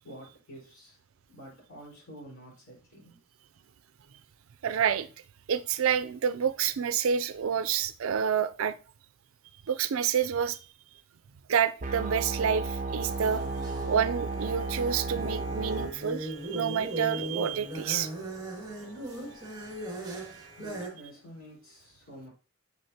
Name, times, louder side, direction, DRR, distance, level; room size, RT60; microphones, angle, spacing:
voice 1, 0.0-1.0 1.3-3.2 18.8-18.9 20.6-22.3, equal, 75° left, 4.4 m, -48 dB
voice 2, 4.6-5.1 5.5-8.7 9.7-10.6 11.5-13.4 13.9-18.1, right 7 dB, 80° right, 0.4 m, -28 dB
sound 1, 11.8-15.9, right 3 dB, 40° right, 0.7 m, -33 dB
sound 2, 13.0-20.9, right 1 dB, 20° right, 1.9 m, -39 dB
7.2 x 6.6 x 2.8 m
head